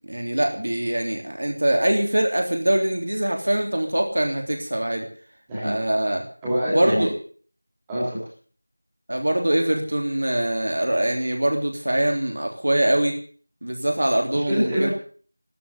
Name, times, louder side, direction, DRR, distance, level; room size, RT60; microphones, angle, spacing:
voice 1, 0.1-5.1 5.6-6.2 6.7-7.1 9.1-13.2 13.6-14.9, right 1 dB, 45° right, 3 dB, 3.3 m, -23 dB
voice 2, 6.4-7.1 7.9-8.2 14.3-14.9, equal, 5° right, -9 dB, 2.9 m, -24 dB
12.5 x 12.0 x 7.1 m, 0.43 s
figure-of-eight pair, 180°, 0 cm